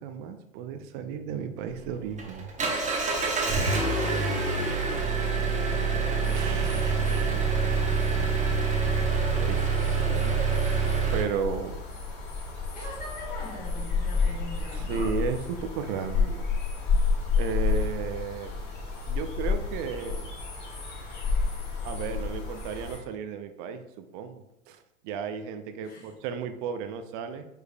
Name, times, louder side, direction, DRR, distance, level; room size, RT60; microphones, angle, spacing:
voice 1, 0.0-2.5 6.3-7.3 9.4-10.4 11.1-11.8 14.7-16.5 17.4-18.5 19.1-20.3 21.8-24.8 25.0-27.5, right 6 dB, 35° right, 9 dB, 0.4 m, -34 dB
Engine, 1.7-11.2, right 4 dB, 15° right, 0.9 m, -26 dB
sound 1, 6.2-23.0, left 4 dB, 40° left, 1.4 m, -31 dB
voice 2, 12.7-15.1 25.8-26.1, left 1 dB, 20° left, -6 dB, 1.4 m, -42 dB
5.1 x 4.7 x 2.2 m, 0.88 s
hypercardioid pair, 95°, 42 cm